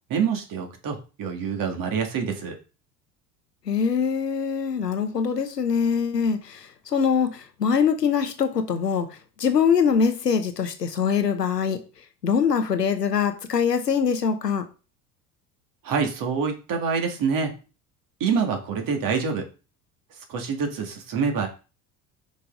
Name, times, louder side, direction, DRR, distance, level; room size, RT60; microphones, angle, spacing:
voice 1, 0.1-2.6 15.8-17.5 18.2-19.5 20.3-21.5, right 6 dB, 45° right, 4 dB, 2.1 m, -26 dB
voice 2, 3.7-11.8 12.2-14.6, left 6 dB, 90° left, 8 dB, 1.0 m, -23 dB
6.2 x 5.5 x 3.8 m, 0.33 s
figure-of-eight pair, 70°, 47 cm